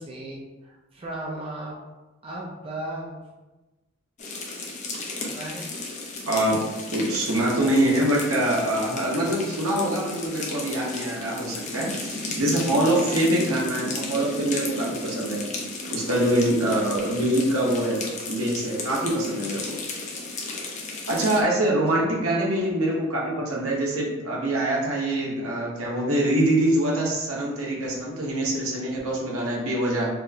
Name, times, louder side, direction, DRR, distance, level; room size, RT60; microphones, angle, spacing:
voice 1, 0.0-1.8 2.2-3.2 5.3-5.6 21.9-22.0, right 1 dB, 25° right, -4 dB, 0.4 m, -36 dB
sound 1, 4.2-21.4, left 3 dB, 35° left, 0.5 m, -34 dB
voice 2, 6.3-6.6 6.9-15.4 15.9-19.8 21.1-30.1, right 1 dB, 80° right, -3 dB, 0.9 m, -24 dB
4.5 x 2.0 x 2.6 m, 1.1 s
head